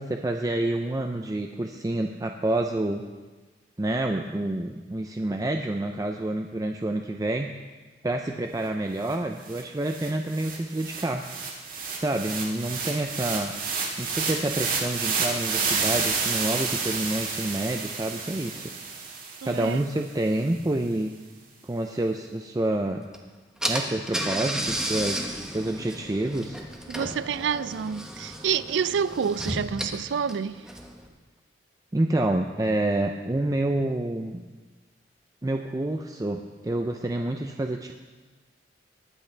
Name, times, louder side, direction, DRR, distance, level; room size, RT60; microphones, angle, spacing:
voice 1, 0.0-3.0 3.8-7.5 8.0-11.2 12.0-13.5 14.0-18.7 19.4-21.1 21.6-23.0 23.7-26.6 31.9-34.4 35.4-37.9, right 1 dB, 20° right, 0.5 m, -28 dB
sound 1, 9.1-9.2 9.5-19.8, right 5 dB, 50° right, 1.9 m, -30 dB
voice 2, 19.4-19.9 26.9-30.6, right 7 dB, 80° right, 0.4 m, -28 dB
Car / Engine, 23.1-23.2 23.6-31.0, right 1 dB, 5° right, 1.1 m, -33 dB
20.5 x 8.2 x 3.3 m
head